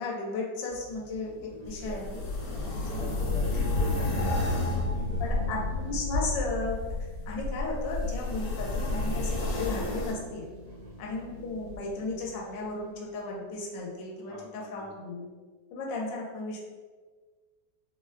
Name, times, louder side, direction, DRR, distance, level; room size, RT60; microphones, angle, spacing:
voice 1, 0.0-2.2 3.0-3.1 5.2-6.8 7.3-10.5 11.0-15.3 15.7-16.6, left 3 dB, 90° left, -2 dB, 1.3 m, -35 dB
sound 1, 0.7-13.7, left 2 dB, 85° right, 1.5 m, -42 dB
voice 2, 1.3-5.6 10.6-11.1 14.2-14.9, right 2 dB, 70° right, -6 dB, 1.1 m, -44 dB
sound 2, 1.7-10.1, left 2 dB, 70° left, 1.1 m, -31 dB
3.8 x 2.0 x 2.5 m, 1.4 s
omnidirectional pair, 1.9 m